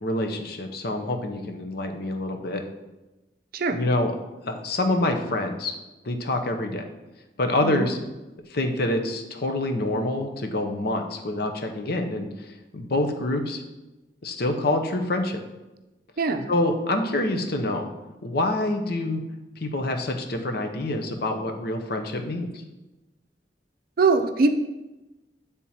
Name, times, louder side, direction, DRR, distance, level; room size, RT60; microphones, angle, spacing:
voice 1, 0.0-2.6 3.7-4.2 4.5-5.7 6.0-6.9 7.4-8.0 8.5-12.3 12.7-13.6 14.2-15.4 16.5-17.9 18.2-19.2 19.6-22.5, left 2 dB, 65° left, 5 dB, 0.8 m, -26 dB
voice 2, 16.2-16.5 24.0-24.5, right 4 dB, 55° right, 7 dB, 0.5 m, -22 dB
8.6 x 3.6 x 4.2 m, 1.0 s
head